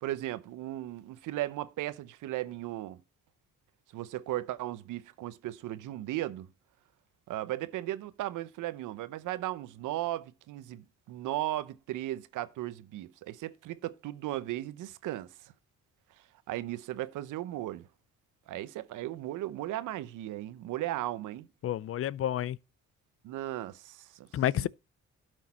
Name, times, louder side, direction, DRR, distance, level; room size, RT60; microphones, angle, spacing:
voice 1, 0.0-3.0 3.9-6.5 7.3-15.5 16.5-17.9 18.5-21.5 23.2-24.7, right 15 dB, 85° right, 0.8 m, -36 dB
voice 2, 21.6-22.6 24.3-24.7, left 11 dB, 50° left, 0.4 m, -29 dB
12.0 x 6.4 x 4.2 m
cardioid pair, 90°, 30 cm